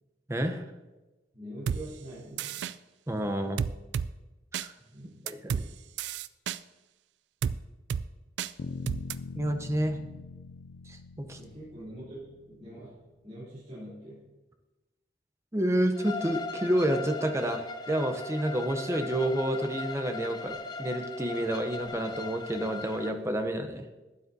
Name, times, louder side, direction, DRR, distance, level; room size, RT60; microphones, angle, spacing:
voice 1, 0.3-0.6 3.1-3.6 4.5-4.7 5.3-5.7 9.4-10.0 10.9-11.4 15.5-23.9, right 1 dB, 15° right, 6 dB, 0.7 m, -29 dB
voice 2, 1.3-2.6 4.9-5.4 11.3-13.0 13.2-14.2, right 1 dB, 35° right, -11 dB, 3.3 m, -44 dB
sound 1, 1.7-1.8 2.4-2.7 3.6-4.1 4.5-4.7 5.3-5.6 6.0-6.6 7.4-7.6 7.9-8.0 8.4-8.5 8.9-9.1, right 7 dB, 80° right, 0.3 m, -30 dB
sound 2, 8.6-12.6, left 4 dB, 80° left, 0.4 m, -42 dB
Bowed string instrument, 15.9-23.1, left 3 dB, 25° left, 0.5 m, -39 dB
12.0 x 9.3 x 2.7 m, 1.1 s
head